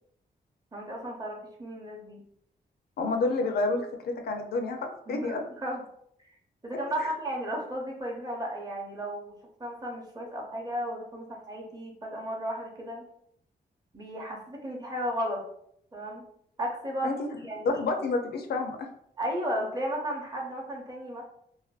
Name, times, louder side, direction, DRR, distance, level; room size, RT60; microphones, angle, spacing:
voice 1, 0.7-2.2 5.1-5.8 6.6-13.0 13.9-15.4 15.9-16.2 16.6-17.8 19.2-21.2, equal, 25° right, -1 dB, 0.6 m, -34 dB
voice 2, 3.0-5.4 7.0-7.1 17.0-17.1 17.6-18.9, left 3 dB, 75° left, 4 dB, 0.4 m, -29 dB
2.5 x 2.1 x 2.3 m, 0.70 s
cardioid pair, 95°, 16 cm